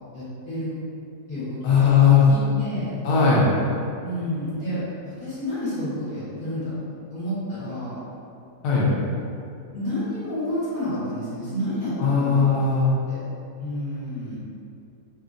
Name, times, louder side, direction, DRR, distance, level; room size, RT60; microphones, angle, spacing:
voice 1, 0.1-0.7 1.3-3.0 4.0-6.7 7.1-7.9 9.7-12.6 13.1-13.2 13.6-14.4, equal, 40° left, -11 dB, 1.0 m, -30 dB
voice 2, 1.6-2.2 3.0-3.5 8.6-8.9 12.0-12.9, left 6 dB, 70° left, -5 dB, 0.9 m, -18 dB
2.7 x 2.7 x 2.5 m, 2.6 s
omnidirectional pair, 1.7 m